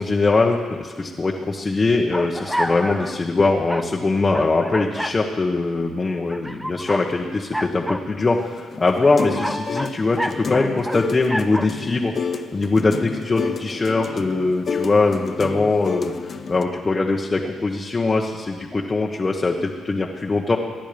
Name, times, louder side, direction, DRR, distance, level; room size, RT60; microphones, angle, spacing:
voice 1, 0.0-12.1 12.5-20.6, left 3 dB, 25° left, -1 dB, 1.4 m, -22 dB
sound 1, 2.1-3.2 3.7-3.9 4.3-5.2 6.3-7.1 7.5-8.0 8.8-11.0 11.3-11.7, equal, ahead, 0.7 m, -28 dB
sound 2, 8.4-16.6, left 5 dB, 45° left, 0.9 m, -30 dB
25.0 x 10.5 x 5.3 m, 1.5 s
cardioid pair, 90°, 0 cm